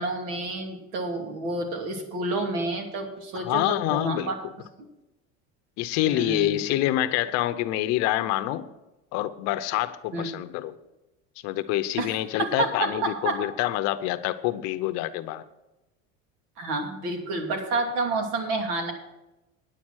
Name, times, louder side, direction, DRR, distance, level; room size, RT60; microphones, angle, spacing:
voice 1, 0.0-4.4 4.8-4.9 6.0-6.6 10.1-10.3 12.0-13.4 16.6-18.9, right 2 dB, 70° right, 4 dB, 2.6 m, -29 dB
voice 2, 3.4-4.4 5.8-8.7 9.1-10.7 11.4-15.4, left 14 dB, 55° left, 12 dB, 0.8 m, -26 dB
9.9 x 8.8 x 6.3 m, 0.98 s
cardioid pair, 150°, 32 cm